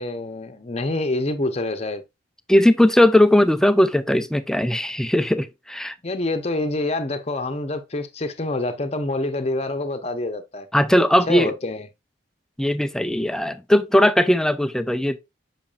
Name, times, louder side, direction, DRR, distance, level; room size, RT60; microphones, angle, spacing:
voice 1, 0.0-2.0 6.0-10.7 11.3-11.8, left 2 dB, 35° left, 0.8 m, -26 dB
voice 2, 2.5-5.9 10.7-11.5 12.6-15.2, left 1 dB, 5° left, 0.4 m, -18 dB
7.2 x 5.8 x 2.4 m
head